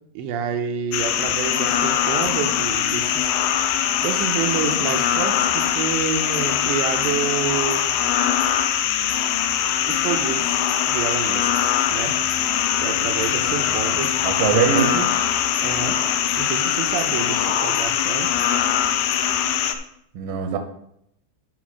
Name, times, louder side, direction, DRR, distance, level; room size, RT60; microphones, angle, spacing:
voice 1, 0.1-3.7 4.0-7.9 9.9-12.3 12.8-14.2 14.5-14.9 15.6-16.0 16.4-18.3, right 8 dB, 85° right, 5 dB, 3.1 m, -28 dB
sound 1, 0.9-19.7, left 10 dB, 80° left, 2.4 m, -22 dB
voice 2, 14.2-15.1 20.1-20.6, right 6 dB, 70° right, 5 dB, 2.2 m, -21 dB
11.5 x 4.0 x 6.2 m, 0.74 s
omnidirectional pair, 4.9 m